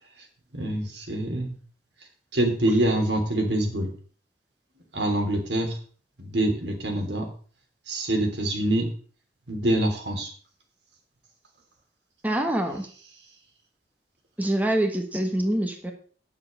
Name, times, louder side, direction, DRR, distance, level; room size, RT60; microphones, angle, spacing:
voice 1, 0.5-1.5 2.3-3.9 4.9-5.8 6.2-7.3 7.9-8.9 9.5-10.3, right 1 dB, 80° right, 3 dB, 3.3 m, -25 dB
voice 2, 12.2-12.9 14.4-15.9, right 1 dB, 10° right, 4 dB, 1.3 m, -25 dB
9.6 x 7.3 x 6.5 m, 0.43 s
head